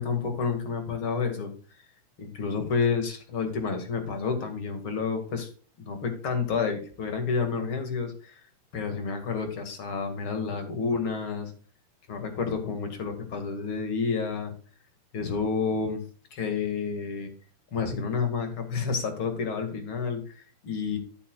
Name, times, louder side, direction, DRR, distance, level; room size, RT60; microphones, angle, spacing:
voice 1, 0.0-1.5 2.2-5.5 5.8-8.4 8.7-11.5 12.1-14.5 15.1-16.0 16.3-17.3 17.7-21.0, left 5 dB, 40° left, 5 dB, 2.1 m, -30 dB
13.0 x 8.5 x 2.4 m, 0.39 s
omnidirectional pair, 4.7 m